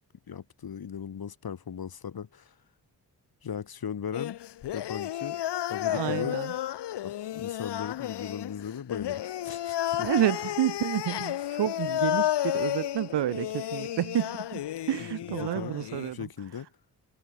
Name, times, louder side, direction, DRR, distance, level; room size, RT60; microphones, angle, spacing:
voice 1, 0.3-2.5 3.4-4.4 4.7-5.4 5.7-6.4 7.0-10.1 15.2-15.7 16.1-16.7, left 7 dB, 60° left, 5.0 m, -37 dB
sound 1, 4.1-16.1, left 12 dB, 80° left, 1.3 m, -32 dB
voice 2, 5.9-6.5 10.0-16.3, right 12 dB, 85° right, 2.5 m, -30 dB
cardioid pair, 75°, 41 cm